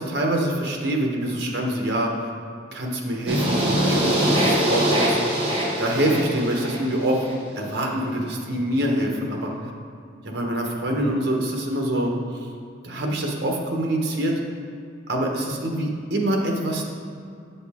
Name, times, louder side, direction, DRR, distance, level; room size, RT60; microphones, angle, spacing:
voice 1, 0.0-2.1 2.7-5.2 5.8-7.3 7.6-9.5 10.2-12.1 12.8-14.3 15.1-16.9, right 1 dB, 65° right, 0 dB, 1.1 m, -25 dB
sound 1, 3.3-7.3, equal, 30° right, 1.4 m, -23 dB
7.2 x 6.8 x 3.6 m, 2.4 s
head